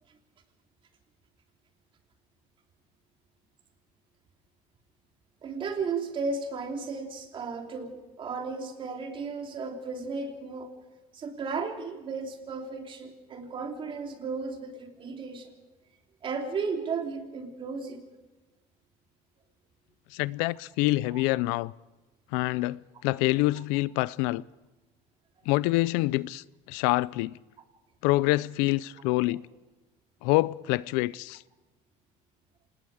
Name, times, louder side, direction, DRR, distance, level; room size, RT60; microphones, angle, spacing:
voice 1, 5.4-10.7 11.1-15.5 16.2-18.0 21.1-21.2 29.3-29.4, right 4 dB, 35° right, 3.2 m, -34 dB
voice 2, 20.1-21.7 22.3-24.4 25.5-27.3 28.0-29.4 30.2-31.4, left 20 dB, 90° left, 0.5 m, -26 dB
26.5 x 20.0 x 4.9 m
cardioid pair, 135°, 14 cm